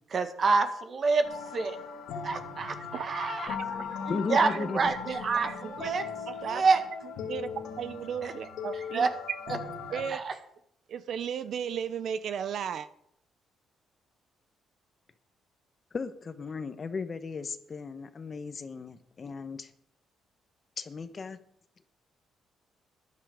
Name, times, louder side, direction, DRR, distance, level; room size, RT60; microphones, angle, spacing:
voice 1, 0.1-1.2 1.5-1.8 2.2-3.6 4.1-6.0 6.4-6.8 8.2-8.3 8.9-9.1 9.9-10.3, right 4 dB, 45° right, 8 dB, 1.7 m, -27 dB
sound 1, 1.2-10.1, left 6 dB, 80° left, 1.8 m, -39 dB
voice 2, 2.9-3.3 3.6-4.0 4.3-5.9 6.3-6.7 7.2-9.1 9.9-10.2 10.9-12.9, right 8 dB, 65° right, 13 dB, 0.7 m, -36 dB
voice 3, 4.1-4.9 15.9-19.7 20.8-21.4, left 4 dB, 40° left, 11 dB, 1.1 m, -36 dB
13.5 x 11.0 x 5.0 m, 0.72 s
cardioid pair, 90°, 0 cm